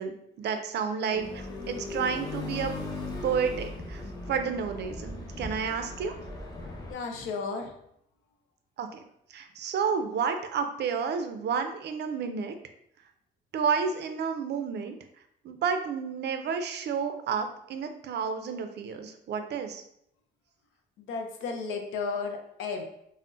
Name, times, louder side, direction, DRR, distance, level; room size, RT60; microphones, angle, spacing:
voice 1, 0.0-2.7 3.2-4.0 4.3-6.1 8.8-9.0 9.3-12.5 13.5-15.0 15.4-19.8, right 6 dB, 60° right, 7 dB, 0.4 m, -31 dB
sound 1, 1.1-6.9, left 2 dB, 20° left, 0.6 m, -38 dB
voice 2, 6.9-7.7 21.0-22.8, left 4 dB, 85° left, 4 dB, 0.5 m, -33 dB
3.6 x 2.0 x 2.4 m, 0.74 s
cardioid pair, 90°, 20 cm